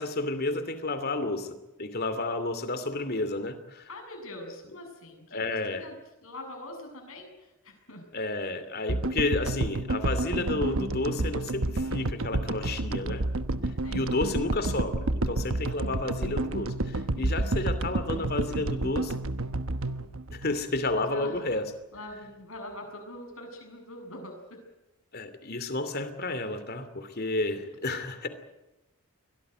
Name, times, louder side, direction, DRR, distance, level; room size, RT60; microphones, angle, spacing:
voice 1, 0.0-3.9 5.3-5.9 8.1-13.2 13.9-19.1 20.3-21.6 25.1-28.3, left 2 dB, 45° left, 11 dB, 2.8 m, -31 dB
voice 2, 3.9-8.0 13.8-14.1 21.0-21.4 21.9-24.6, left 1 dB, 65° left, 4 dB, 7.5 m, -43 dB
sound 1, 8.9-21.2, right 2 dB, 60° right, 1.1 m, -30 dB
23.5 x 18.0 x 9.2 m, 0.97 s
head